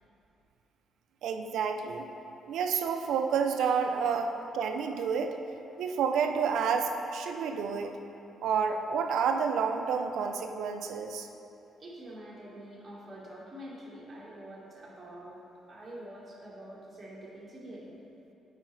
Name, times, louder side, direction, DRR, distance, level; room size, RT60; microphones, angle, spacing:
voice 1, 1.2-2.0 2.5-5.3 5.8-7.9 8.4-11.3, right 6 dB, 80° right, 5 dB, 0.5 m, -29 dB
voice 2, 11.8-15.4 15.7-17.9, right 1 dB, 25° right, -7 dB, 1.4 m, -46 dB
8.9 x 4.9 x 3.2 m, 2.8 s
cardioid pair, 90°, 0 cm